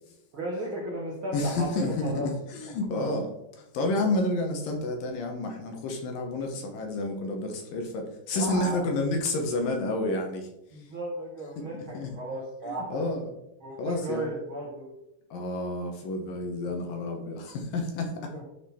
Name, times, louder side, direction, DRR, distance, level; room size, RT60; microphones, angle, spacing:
voice 1, 0.3-2.3 2.6-2.7 8.3-8.9 10.7-13.1 13.6-14.9 18.3-18.4, right 2 dB, 70° right, -3 dB, 1.2 m, -35 dB
voice 2, 1.3-10.9 11.7-12.1 12.7-13.3 13.8-14.3 15.3-18.3, left 2 dB, 70° left, 3 dB, 2.5 m, -30 dB
11.5 x 4.1 x 4.2 m, 0.86 s
omnidirectional pair, 4.6 m